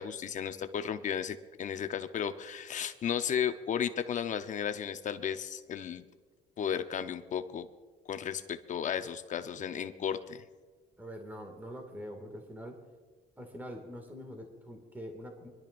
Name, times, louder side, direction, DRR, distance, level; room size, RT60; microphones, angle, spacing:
voice 1, 0.0-6.0 6.6-7.7 8.1-10.4, left 8 dB, 45° left, 9 dB, 0.8 m, -34 dB
voice 2, 11.0-12.8 13.4-15.5, equal, 10° right, 3 dB, 2.1 m, -44 dB
24.5 x 12.0 x 2.6 m, 1.3 s
cardioid pair, 110°, 17 cm